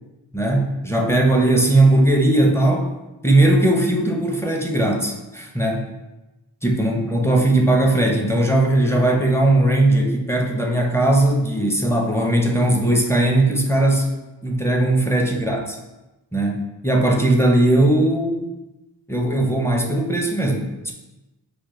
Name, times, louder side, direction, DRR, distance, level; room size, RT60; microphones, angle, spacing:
voice 1, 0.3-2.9 3.2-5.9 6.6-14.1 14.4-15.8 16.3-18.5 19.1-20.9, right 1 dB, 5° left, 0 dB, 0.5 m, -18 dB
4.9 x 2.1 x 3.1 m, 1.0 s
wide cardioid pair, 60°, 42 cm